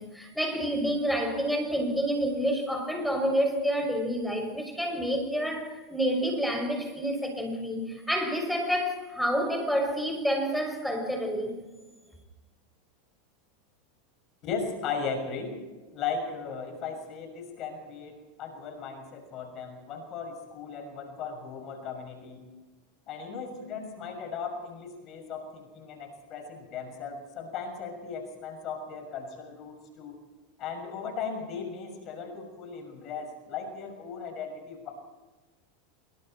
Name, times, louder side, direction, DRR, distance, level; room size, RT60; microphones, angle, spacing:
voice 1, 0.0-11.5, equal, ahead, 3 dB, 6.6 m, -28 dB
voice 2, 14.4-15.6 15.9-22.4 23.1-30.2 30.6-34.9, left 5 dB, 45° left, 4 dB, 6.4 m, -37 dB
26.0 x 23.0 x 4.5 m, 1.2 s
hypercardioid pair, 115°, 0 cm